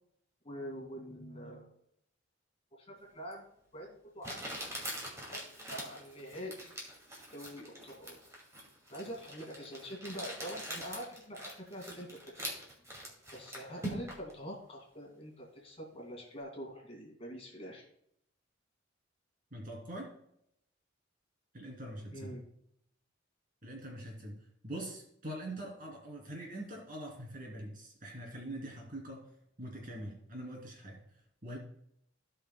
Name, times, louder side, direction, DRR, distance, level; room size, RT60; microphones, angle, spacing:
voice 1, 0.4-1.7 2.7-3.5 3.7-4.8 5.3-5.4 5.7-6.8 7.3-8.2 8.9-12.5 13.3-17.9 22.1-22.5, equal, 30° left, -1 dB, 2.2 m, -45 dB
Crumpling crinkling, 3.3-3.4 4.2-14.3, equal, 15° right, 2.3 m, -43 dB
voice 2, 19.5-20.1 21.5-22.3 23.6-24.4 24.6-29.3 29.6-31.0 31.4-31.6, right 1 dB, 45° right, -1 dB, 2.8 m, -43 dB
16.5 x 5.6 x 2.2 m, 0.74 s
head